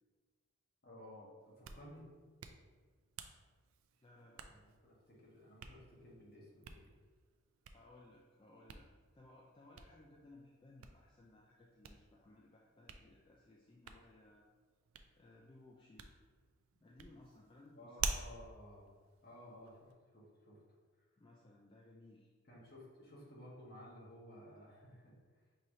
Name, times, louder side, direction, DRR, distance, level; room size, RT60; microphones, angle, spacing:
voice 1, 0.8-2.1 4.4-6.9 17.7-18.9 19.2-20.6 22.5-25.2, left 1 dB, 50° left, -5 dB, 1.2 m, -56 dB
Hands, 1.4-19.9, right 5 dB, 90° right, 0.4 m, -50 dB
voice 2, 4.0-4.6 7.7-8.9 9.1-14.5 15.2-16.2 16.8-18.1 21.2-22.3, left 2 dB, 25° left, -3 dB, 0.3 m, -61 dB
5.4 x 3.1 x 2.7 m, 1.5 s
head